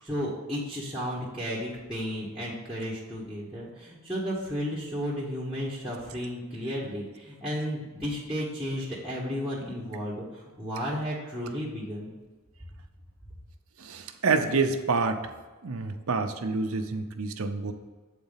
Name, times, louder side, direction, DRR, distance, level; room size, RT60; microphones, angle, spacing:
voice 1, 0.0-12.1, equal, 5° right, -8 dB, 1.3 m, -33 dB
voice 2, 13.8-15.2 15.6-17.7, right 4 dB, 70° right, 7 dB, 0.7 m, -27 dB
8.0 x 4.2 x 5.7 m, 1.3 s
head